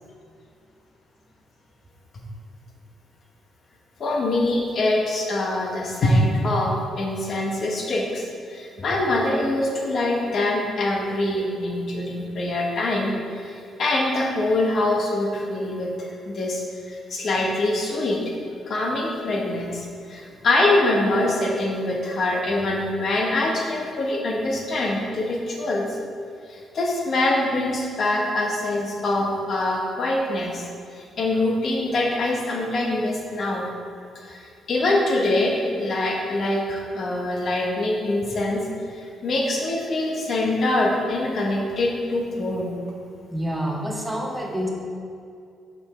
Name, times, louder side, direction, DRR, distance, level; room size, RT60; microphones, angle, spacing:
voice 1, 4.0-18.2 18.7-26.0 26.5-30.7 30.9-33.7 34.2-38.7 38.9-42.8, left 2 dB, 55° left, -1 dB, 1.3 m, -24 dB
voice 2, 43.3-44.7, equal, 10° right, 0 dB, 0.9 m, -27 dB
5.8 x 5.5 x 4.4 m, 2.5 s
cardioid pair, 90°, 0 cm